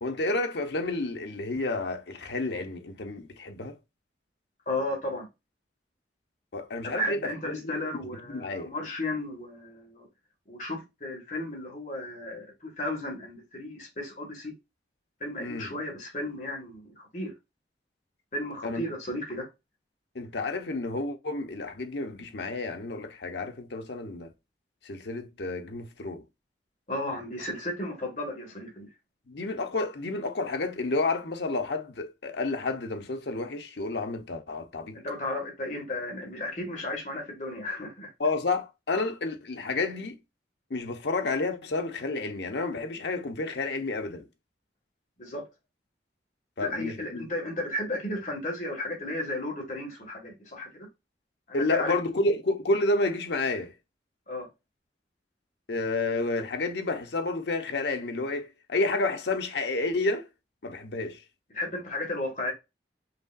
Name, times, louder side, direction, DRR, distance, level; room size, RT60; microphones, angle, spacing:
voice 1, 0.0-3.8 6.5-7.7 8.3-8.7 15.4-15.7 18.6-18.9 20.1-24.3 24.8-26.2 29.3-35.0 38.2-40.2 40.7-44.3 46.6-47.3 51.5-53.7 55.7-60.3 60.6-61.2, left 2 dB, 75° left, 0.8 m, -30 dB
voice 2, 4.6-5.3 6.8-10.1 10.5-14.5 15.2-17.3 18.3-19.5 26.9-28.9 34.9-38.1 45.2-45.4 46.6-50.9 51.5-51.9 54.3-54.5 61.5-62.5, left 1 dB, 45° left, 1.8 m, -34 dB
5.1 x 2.9 x 2.5 m
head